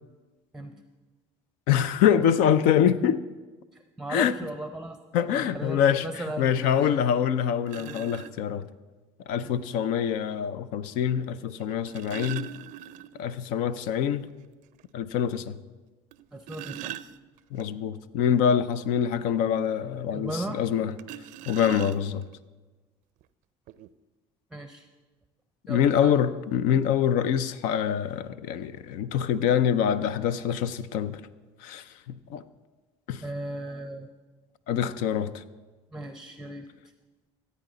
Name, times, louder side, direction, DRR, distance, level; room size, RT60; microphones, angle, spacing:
voice 1, 1.7-3.2 4.1-4.3 5.1-6.1 6.4-8.7 9.3-12.5 13.2-14.3 14.9-15.6 17.5-20.9 21.5-22.3 25.7-31.2 31.6-32.4 33.1-33.2 34.7-35.4, left 9 dB, 75° left, 14 dB, 0.5 m, -25 dB
voice 2, 3.7-5.0 5.5-7.0 7.8-8.1 9.4-9.8 16.3-16.9 20.1-20.6 24.5-24.9 25.7-26.1 33.2-34.1 35.9-36.7, right 1 dB, 5° right, 7 dB, 0.6 m, -37 dB
sound 1, 7.0-7.1 7.7-8.3 9.7-9.8 11.6-13.3 13.7-13.8 14.2-14.3 14.8-14.9 16.1-17.6 21.0-22.3 23.2-23.3 23.7-23.9, right 12 dB, 65° right, 0.4 m, -40 dB
14.5 x 8.4 x 3.9 m, 1.3 s
supercardioid pair, 80°, 14 cm